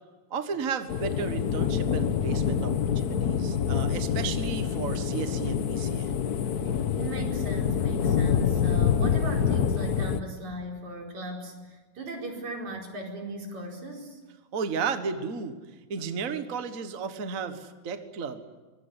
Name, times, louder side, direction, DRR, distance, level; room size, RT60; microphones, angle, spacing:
voice 1, 0.3-6.1 14.5-15.6 15.9-18.4, right 5 dB, 40° right, 9 dB, 1.3 m, -33 dB
sound 1, 0.9-10.2, left 7 dB, 85° left, 0.8 m, -26 dB
voice 2, 7.0-14.2, right 1 dB, 70° right, 1 dB, 6.0 m, -38 dB
24.0 x 22.5 x 9.8 m, 1.3 s
omnidirectional pair, 3.4 m